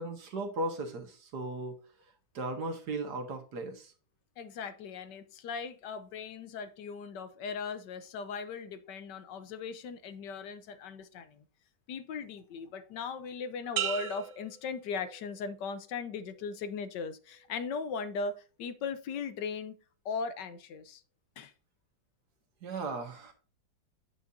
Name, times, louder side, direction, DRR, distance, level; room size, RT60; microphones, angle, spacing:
voice 1, 0.0-1.8 2.3-3.9 22.6-23.3, right 2 dB, 60° right, 5 dB, 2.0 m, -36 dB
voice 2, 4.4-11.4 11.9-19.8 20.0-21.0 21.4-21.5, left 5 dB, 70° left, 12 dB, 1.3 m, -38 dB
sound 1, 13.8-15.5 16.0-16.5, right 11 dB, 85° right, 1.5 m, -38 dB
9.1 x 5.7 x 2.6 m, 0.37 s
omnidirectional pair, 2.1 m